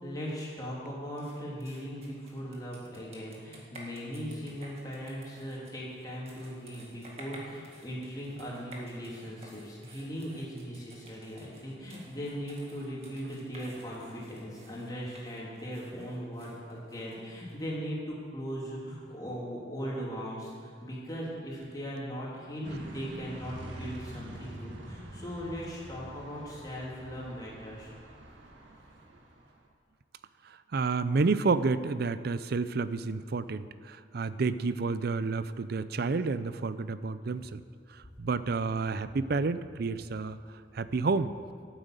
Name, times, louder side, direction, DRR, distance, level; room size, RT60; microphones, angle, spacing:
voice 1, 0.0-27.9, equal, 20° left, -5 dB, 3.3 m, -39 dB
sound 1, 1.2-17.5, right 2 dB, 35° right, 2.0 m, -53 dB
sound 2, 22.6-29.6, right 1 dB, 75° right, 1.9 m, -45 dB
voice 2, 30.5-37.6 37.9-40.4 40.7-41.3, right 4 dB, 55° right, 14 dB, 0.5 m, -30 dB
11.5 x 9.1 x 8.1 m, 2.1 s
head